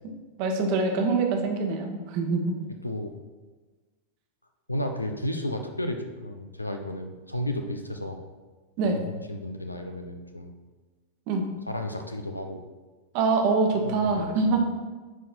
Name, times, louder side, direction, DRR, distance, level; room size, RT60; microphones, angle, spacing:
voice 1, 0.4-2.5 8.8-9.0 11.3-11.5 13.1-14.6, right 3 dB, 45° right, 3 dB, 1.2 m, -24 dB
voice 2, 4.7-8.2 8.8-10.5 11.7-12.6 13.8-14.7, left 1 dB, 85° left, 6 dB, 0.7 m, -33 dB
9.2 x 4.4 x 4.4 m, 1.3 s
figure-of-eight pair, 90°, 0 cm